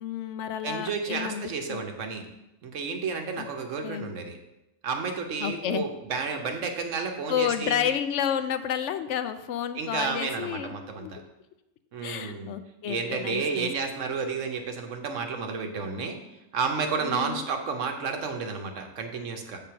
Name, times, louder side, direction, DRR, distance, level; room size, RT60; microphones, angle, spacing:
voice 1, 0.0-1.4 1.7-1.8 3.4-3.5 3.8-4.1 5.4-5.8 7.3-10.7 11.0-11.1 12.0-13.7 17.0-17.5, left 9 dB, 75° left, 10 dB, 0.9 m, -30 dB
voice 2, 0.6-2.3 2.6-4.4 4.8-7.9 9.8-11.2 11.9-12.5 12.8-16.2 16.5-19.6, right 5 dB, 90° right, 4 dB, 1.2 m, -31 dB
7.7 x 3.8 x 5.7 m, 0.93 s
omnidirectional pair, 1.2 m